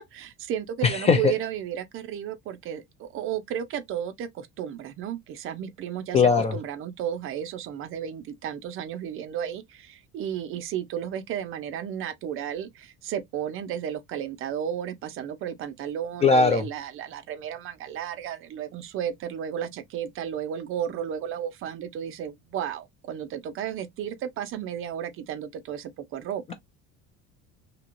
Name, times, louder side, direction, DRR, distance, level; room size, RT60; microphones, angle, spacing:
voice 1, 0.0-26.5, right 9 dB, 40° right, 0.5 m, -33 dB
voice 2, 0.8-1.3 6.1-6.5 16.2-16.6, left 5 dB, 20° left, 0.4 m, -19 dB
2.9 x 2.8 x 2.5 m
cardioid pair, 155°, 32 cm